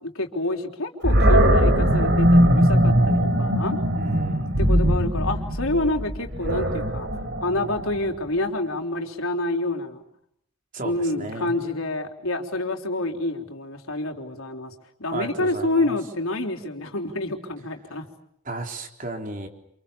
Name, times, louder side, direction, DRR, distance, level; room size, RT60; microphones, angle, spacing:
voice 1, 0.0-3.8 4.6-7.1 7.4-10.0 10.8-14.7 15.0-18.0, left 2 dB, 85° left, 3 dB, 3.9 m, -27 dB
Animal, 1.0-8.2, equal, 55° right, 4.1 m, -20 dB
voice 2, 3.9-4.5 10.7-11.5 15.1-15.9 18.5-19.5, right 2 dB, 40° right, 3 dB, 3.9 m, -34 dB
30.0 x 28.0 x 7.2 m, 0.74 s
head